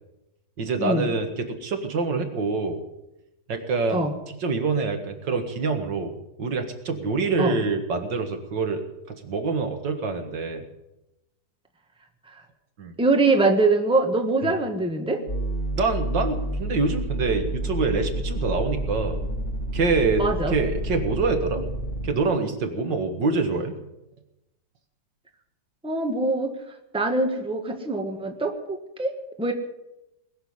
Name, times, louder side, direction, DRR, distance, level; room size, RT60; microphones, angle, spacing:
voice 1, 0.6-2.8 3.5-8.8 9.1-10.6 12.8-12.9 14.4-14.5 15.7-19.2 19.7-21.6 22.0-23.7, right 4 dB, 80° right, 6 dB, 2.3 m, -26 dB
voice 2, 13.0-15.2 20.2-20.5 25.8-26.5 26.9-29.5, right 2 dB, 5° right, 4 dB, 1.4 m, -23 dB
sound 1, 15.3-22.1, right 1 dB, 40° left, 2.7 m, -29 dB
20.5 x 7.0 x 9.6 m, 0.92 s
omnidirectional pair, 1.9 m